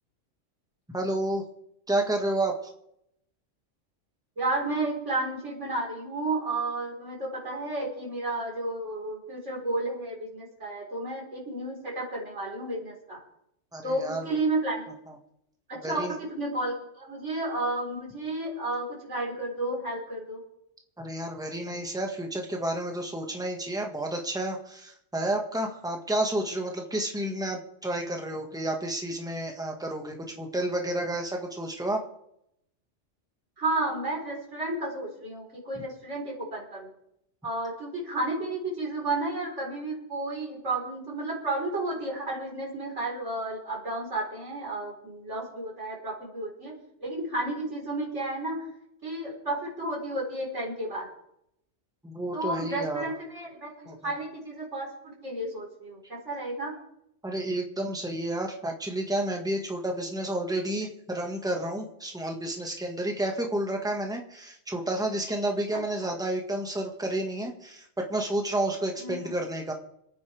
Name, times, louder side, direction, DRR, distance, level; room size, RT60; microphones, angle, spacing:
voice 1, 0.9-1.4 1.9-2.6 13.7-14.4 15.8-16.1 21.0-32.0 35.7-35.8 52.0-53.0 53.9-54.1 57.2-69.7, right 1 dB, 5° right, 2 dB, 1.7 m, -30 dB
voice 2, 4.4-13.2 13.8-14.9 15.7-20.4 33.6-36.9 37.4-46.7 47.0-48.7 49.0-51.1 52.3-56.7 66.0-66.1 69.0-69.3, right 2 dB, 70° right, -3 dB, 4.8 m, -32 dB
26.5 x 9.6 x 3.5 m, 0.77 s
omnidirectional pair, 1.3 m